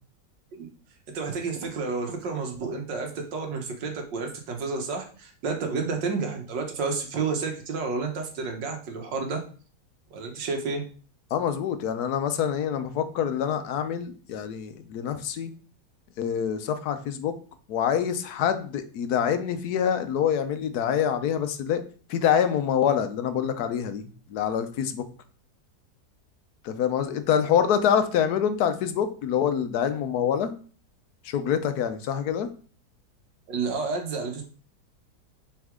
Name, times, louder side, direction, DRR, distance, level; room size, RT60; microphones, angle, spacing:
voice 1, 1.1-9.4 10.1-10.8 33.5-34.4, right 4 dB, 85° right, 3 dB, 1.8 m, -30 dB
voice 2, 11.3-15.5 16.2-17.3 17.7-21.8 22.1-24.0 24.3-25.0 26.6-30.5 31.2-32.5, left 8 dB, 70° left, 10 dB, 1.2 m, -26 dB
6.1 x 4.2 x 3.6 m, 0.41 s
omnidirectional pair, 1.9 m